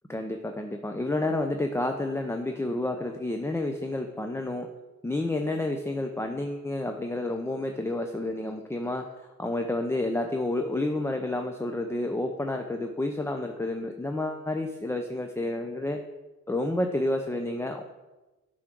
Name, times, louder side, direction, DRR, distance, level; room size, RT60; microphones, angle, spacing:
voice 1, 0.1-4.7 5.0-16.0 16.5-17.8, left 2 dB, 10° left, 5 dB, 0.6 m, -30 dB
8.5 x 3.8 x 6.0 m, 1.1 s
cardioid pair, 90°, 30 cm